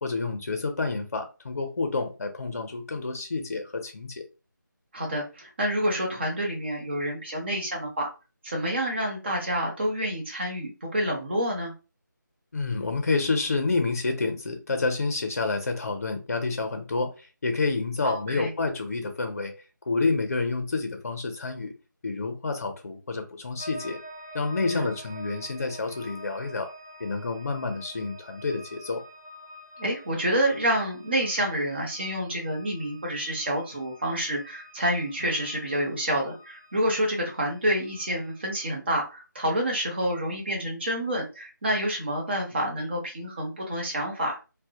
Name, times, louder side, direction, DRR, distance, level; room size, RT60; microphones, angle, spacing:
voice 1, 0.0-4.2 12.5-19.5 19.9-21.7 22.0-24.0 24.3-26.7 27.0-29.0, left 3 dB, 45° left, 0.5 m, -29 dB
voice 2, 4.9-8.1 8.4-11.7 18.0-18.5 24.7-24.8 29.8-44.4, equal, 30° right, 0.7 m, -28 dB
sound 1, 23.6-38.7, equal, 5° right, 0.3 m, -47 dB
2.2 x 2.0 x 2.7 m
figure-of-eight pair, 170°, 11 cm